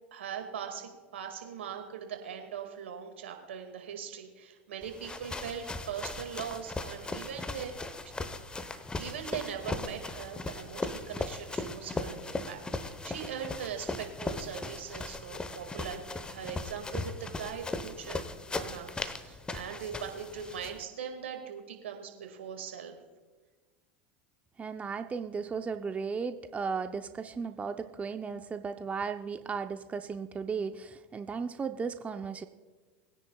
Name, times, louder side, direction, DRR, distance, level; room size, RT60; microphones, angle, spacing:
voice 1, 0.1-7.7 8.0-8.1 9.0-18.9 19.2-23.0, right 7 dB, 80° right, 5 dB, 2.0 m, -41 dB
sound 1, 4.8-20.8, left 3 dB, 15° left, 0.9 m, -38 dB
voice 2, 24.6-32.5, right 5 dB, 20° right, 8 dB, 0.6 m, -35 dB
21.5 x 10.0 x 2.3 m, 1.3 s
hypercardioid pair, 90°, 6 cm